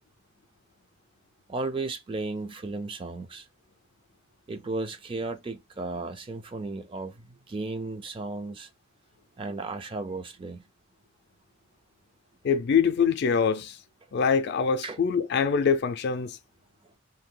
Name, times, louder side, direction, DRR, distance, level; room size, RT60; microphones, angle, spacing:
voice 1, 1.5-3.5 4.5-8.7 9.4-10.6 14.8-15.0, right 3 dB, 25° right, 0.4 m, -34 dB
voice 2, 12.4-13.8 14.1-16.4, left 6 dB, 55° left, 0.4 m, -24 dB
2.7 x 2.2 x 3.7 m
head